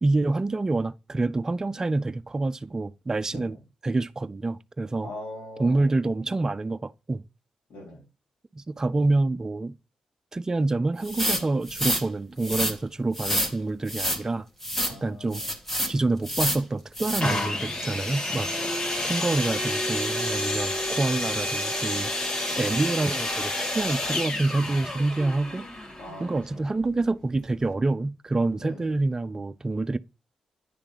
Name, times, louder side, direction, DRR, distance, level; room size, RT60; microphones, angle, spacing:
voice 1, 0.0-3.6 3.8-5.1 5.6-7.3 8.5-9.7 10.3-14.5 14.9-15.4 15.9-18.5 19.0-22.1 22.6-25.9 26.2-30.0, right 2 dB, 30° right, 0.6 m, -27 dB
voice 2, 3.3-3.6 5.0-6.0 7.7-8.0 14.8-15.5 18.5-18.9 22.5-22.7 26.0-26.7 28.5-28.9, left 1 dB, 75° left, 4.0 m, -42 dB
sound 1, 11.0-12.0 12.4-12.7 13.2-13.5 13.9-14.2 14.6-15.0 15.3-15.9 16.2-16.6 17.0-17.2, equal, 15° left, 1.8 m, -27 dB
sound 2, 17.2-26.9 27.6-27.7, left 1 dB, 40° left, 2.4 m, -29 dB
10.0 x 3.6 x 5.1 m
supercardioid pair, 50°, 2 cm